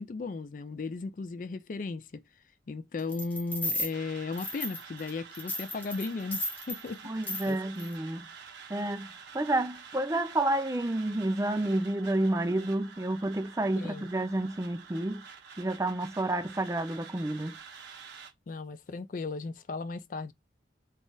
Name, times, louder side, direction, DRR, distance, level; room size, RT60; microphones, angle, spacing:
voice 1, 0.0-2.2 2.7-7.1 7.5-7.6 13.8-14.1 18.5-20.3, left 3 dB, 45° left, 0.4 m, -36 dB
sound 1, 3.1-3.9 4.4-5.1 5.3-6.8 7.2-7.5 7.8-7.9, left 1 dB, 10° left, 0.8 m, -34 dB
sound 2, 3.9-18.3, right 6 dB, 75° right, 1.0 m, -49 dB
voice 2, 7.0-8.3 8.7-15.2 15.6-17.6, right 1 dB, 15° right, 0.4 m, -30 dB
4.0 x 2.4 x 3.8 m
head